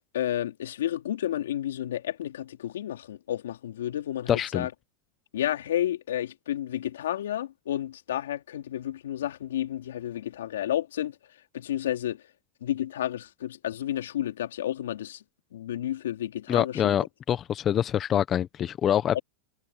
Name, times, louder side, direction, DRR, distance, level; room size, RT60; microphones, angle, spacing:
voice 1, 0.1-4.7 5.3-12.3 12.6-15.2 15.5-16.9 19.1-19.2, left 11 dB, 80° left, 3.1 m, -31 dB
voice 2, 4.3-4.7 16.5-19.2, left 10 dB, 35° left, 1.0 m, -25 dB
hypercardioid pair, 105°, 0 cm